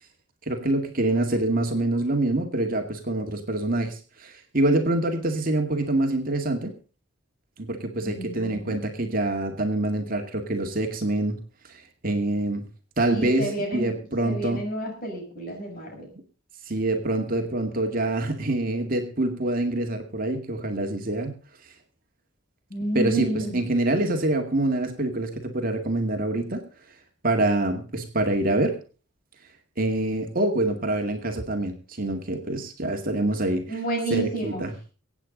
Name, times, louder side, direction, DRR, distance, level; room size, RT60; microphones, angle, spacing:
voice 1, 0.5-6.7 7.6-11.4 11.7-12.6 13.0-14.6 16.7-21.3 22.9-26.6 27.2-28.8 29.8-33.7 34.1-34.7, right 2 dB, 45° right, 4 dB, 2.1 m, -25 dB
voice 2, 8.0-8.8 13.1-13.9 14.2-16.1 22.7-23.6 33.7-34.6, right 2 dB, 45° left, 1 dB, 6.8 m, -30 dB
24.5 x 8.8 x 3.9 m, 0.36 s
head